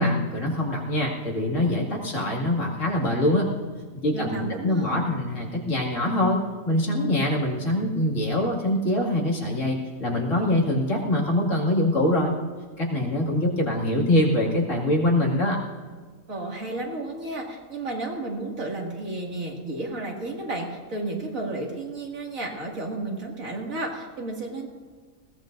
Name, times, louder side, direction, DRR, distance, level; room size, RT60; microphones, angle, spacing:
voice 1, 0.0-3.5 4.0-12.3 12.8-15.6, left 1 dB, 65° left, -2 dB, 2.7 m, -24 dB
voice 2, 4.1-5.1 16.3-24.7, right 2 dB, 75° right, -1 dB, 2.7 m, -32 dB
20.5 x 17.5 x 2.6 m, 1.5 s
omnidirectional pair, 1.4 m